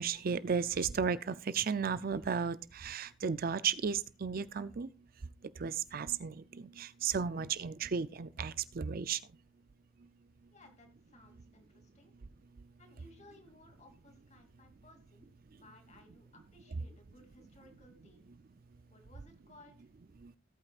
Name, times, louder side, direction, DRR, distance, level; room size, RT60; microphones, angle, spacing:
voice 1, 0.0-4.9 5.6-9.2 20.2-20.3, right 6 dB, 45° right, 15 dB, 0.5 m, -34 dB
voice 2, 10.5-12.1 12.8-18.3 18.9-19.7, left 1 dB, 35° left, 4 dB, 2.8 m, -60 dB
18.0 x 8.7 x 2.4 m, 0.33 s
head